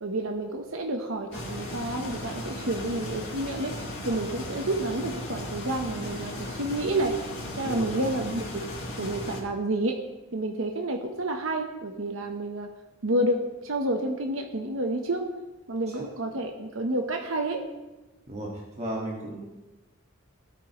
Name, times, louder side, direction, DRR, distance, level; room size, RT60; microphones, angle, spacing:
voice 1, 0.0-7.2 7.6-8.7 9.0-10.0 10.3-12.7 13.0-15.3 15.7-17.6, right 1 dB, 75° right, 3 dB, 1.0 m, -29 dB
sound 1, 1.3-9.4, left 1 dB, 60° left, 3.8 m, -36 dB
voice 2, 7.6-7.9 15.9-16.0 18.3-19.5, right 1 dB, 30° right, -3 dB, 1.7 m, -35 dB
17.0 x 8.7 x 3.1 m, 1.1 s
head